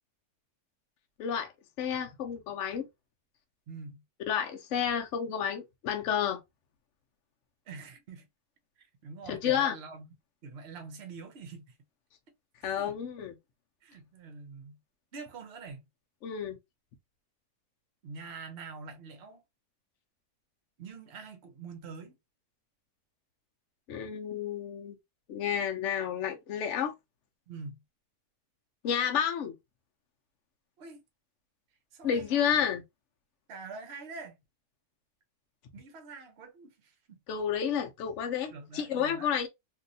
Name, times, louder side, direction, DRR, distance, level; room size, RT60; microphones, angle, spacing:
voice 1, 1.2-1.5 1.8-2.8 4.3-6.4 9.3-9.7 12.6-13.3 16.2-16.6 23.9-25.0 25.3-26.9 28.8-29.5 32.0-32.8 37.3-39.5, left 8 dB, 60° left, 0.9 m, -30 dB
voice 2, 3.7-4.0 7.7-8.3 8.8-10.1 10.4-11.7 12.6-13.0 13.8-14.8 15.1-15.8 18.0-19.4 20.8-22.2 27.5-27.8 30.8-31.0 31.9-32.6 33.5-34.4 35.7-37.2 38.5-39.4, right 4 dB, 50° right, 0.9 m, -45 dB
2.9 x 2.7 x 2.6 m
omnidirectional pair, 1.6 m